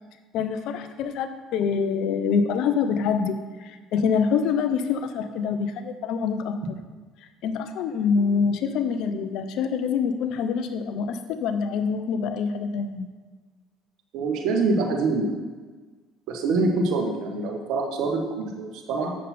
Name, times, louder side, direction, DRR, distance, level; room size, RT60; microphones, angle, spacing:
voice 1, 0.3-6.8 7.4-13.1, left 6 dB, 70° left, 9 dB, 0.7 m, -25 dB
voice 2, 14.1-15.5 16.3-19.1, right 3 dB, 70° right, 2 dB, 1.4 m, -25 dB
7.4 x 6.6 x 4.3 m, 1.3 s
hypercardioid pair, 70°, 0 cm